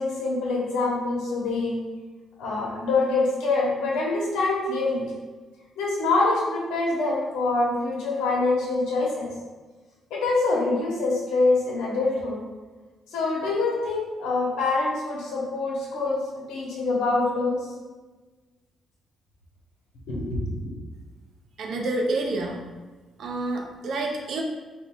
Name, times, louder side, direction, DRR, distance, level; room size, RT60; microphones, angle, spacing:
voice 1, 0.0-1.8 2.4-5.1 5.8-9.3 10.1-12.4 13.1-16.2 16.5-17.7 20.1-20.7, left 3 dB, 90° left, -5 dB, 1.2 m, -25 dB
voice 2, 21.6-22.6 23.2-24.4, right 2 dB, 70° right, 1 dB, 0.8 m, -28 dB
4.4 x 2.3 x 4.5 m, 1.3 s
cardioid pair, 90°, 0 cm